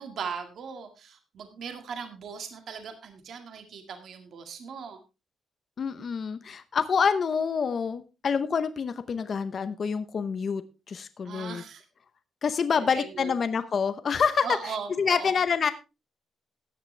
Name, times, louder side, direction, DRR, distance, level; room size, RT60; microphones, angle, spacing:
voice 1, 0.0-5.0 11.2-11.8 12.7-13.3 14.4-15.3, right 6 dB, 55° right, 6 dB, 1.9 m, -38 dB
voice 2, 5.8-11.6 12.4-15.7, left 6 dB, 35° left, 11 dB, 0.8 m, -27 dB
14.5 x 10.0 x 3.3 m, 0.28 s
wide cardioid pair, 180°, 0 cm